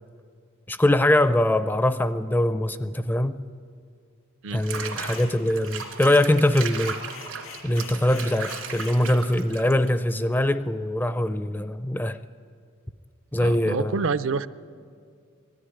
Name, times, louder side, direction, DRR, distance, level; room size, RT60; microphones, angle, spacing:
voice 1, 0.7-3.3 4.5-7.0 7.6-12.2 13.3-14.1, left 1 dB, 10° left, 0.4 m, -22 dB
Water / Bathtub (filling or washing), 4.5-10.0, right 6 dB, 85° right, 2.5 m, -36 dB
sound 1, 4.6-5.3 5.7-9.0, left 6 dB, 85° left, 2.9 m, -45 dB
voice 2, 13.4-14.5, right 4 dB, 65° right, 0.5 m, -27 dB
19.5 x 13.5 x 10.0 m
head